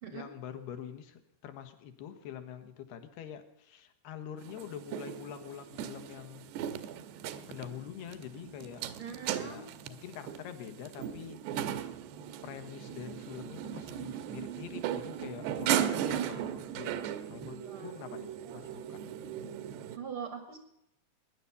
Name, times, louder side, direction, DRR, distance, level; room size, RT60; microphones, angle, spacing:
voice 1, 0.1-6.5 7.5-8.8 9.4-11.5 11.8-11.9 12.4-19.0, left 9 dB, 75° left, 8 dB, 3.2 m, -45 dB
sound 1, 4.4-20.0, right 10 dB, 90° right, 2.9 m, -37 dB
voice 2, 9.0-9.6 17.6-17.9 19.9-20.6, right 7 dB, 75° right, 6 dB, 1.2 m, -41 dB
20.5 x 10.0 x 6.9 m, 0.80 s
omnidirectional pair, 4.7 m